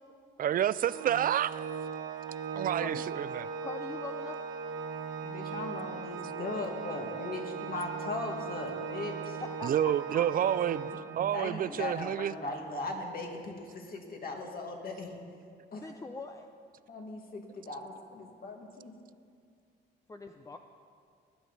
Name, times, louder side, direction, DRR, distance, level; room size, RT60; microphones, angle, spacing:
voice 1, 0.4-1.6 2.5-3.5 9.6-10.9 11.2-12.3, right 10 dB, 45° right, 17 dB, 0.4 m, -29 dB
Organ, 0.9-11.6, right 5 dB, 90° right, 0.8 m, -38 dB
voice 2, 3.6-4.4 9.6-10.3 15.7-16.5 17.1-17.2 20.1-20.6, left 3 dB, 15° left, 5 dB, 0.6 m, -42 dB
voice 3, 5.2-9.4 11.3-15.2 15.7-16.0 16.9-18.9, left 2 dB, 50° left, 1 dB, 2.2 m, -38 dB
19.0 x 9.8 x 4.1 m, 2.2 s
cardioid pair, 90°, 20 cm